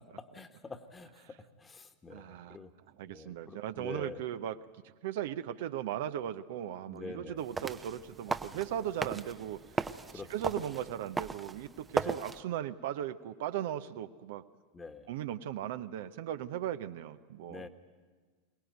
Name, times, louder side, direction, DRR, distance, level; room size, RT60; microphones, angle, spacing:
voice 1, 0.2-2.7 3.1-4.2 6.9-7.4 8.5-8.6 10.1-10.3 12.0-12.2 14.7-15.1 17.5-17.7, left 4 dB, 20° left, 8 dB, 1.5 m, -46 dB
voice 2, 2.1-2.6 2.9-14.4 15.1-17.7, right 11 dB, 60° right, 10 dB, 0.7 m, -38 dB
sound 1, 7.4-12.4, right 4 dB, 15° right, 0.7 m, -37 dB
23.0 x 19.0 x 9.3 m, 1.4 s
figure-of-eight pair, 85°, 0 cm